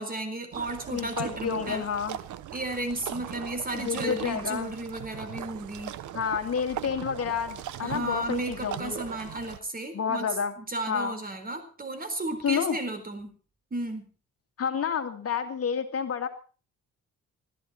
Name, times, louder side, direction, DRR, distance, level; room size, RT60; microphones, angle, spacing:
voice 1, 0.0-1.9 2.5-5.9 7.8-10.3 10.6-13.3 13.7-14.1, right 2 dB, 30° right, 9 dB, 4.3 m, -34 dB
sound 1, 0.5-9.6, right 12 dB, 80° right, 1.1 m, -39 dB
voice 2, 0.9-2.2 3.7-4.7 6.1-9.0 9.9-10.5 10.9-11.1 12.4-12.8 14.6-16.3, left 7 dB, 50° left, 6 dB, 2.2 m, -29 dB
21.5 x 13.5 x 4.4 m, 0.40 s
cardioid pair, 90°, 30 cm